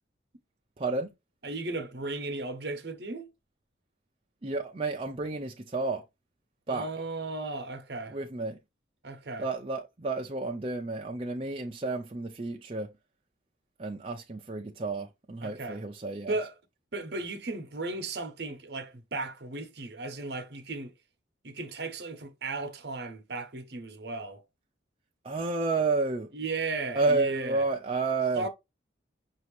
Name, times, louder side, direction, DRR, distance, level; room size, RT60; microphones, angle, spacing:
voice 1, 0.8-1.1 4.4-6.0 6.7-6.9 8.1-8.6 9.4-12.9 13.8-16.4 25.2-26.3 26.9-28.5, right 3 dB, 30° right, 0.5 m, -31 dB
voice 2, 1.4-3.3 6.7-8.2 9.0-9.5 15.4-15.8 16.3-16.5 16.9-20.9 21.4-24.4 26.3-27.7 28.3-28.5, right 3 dB, 60° right, 0.9 m, -35 dB
5.8 x 2.8 x 3.2 m
head